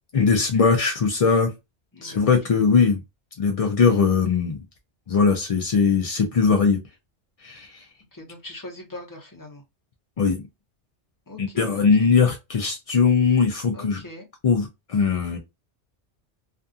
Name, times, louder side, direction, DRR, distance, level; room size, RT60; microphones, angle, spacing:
voice 1, 0.1-1.5 2.0-3.0 3.4-4.6 5.1-6.8 7.4-7.8 10.2-10.4 11.4-14.0 14.4-15.4, left 5 dB, 60° left, 0.3 m, -20 dB
voice 2, 8.1-9.6 11.3-12.2 13.7-14.3, left 2 dB, 20° left, 0.8 m, -41 dB
2.5 x 2.3 x 2.6 m
omnidirectional pair, 1.2 m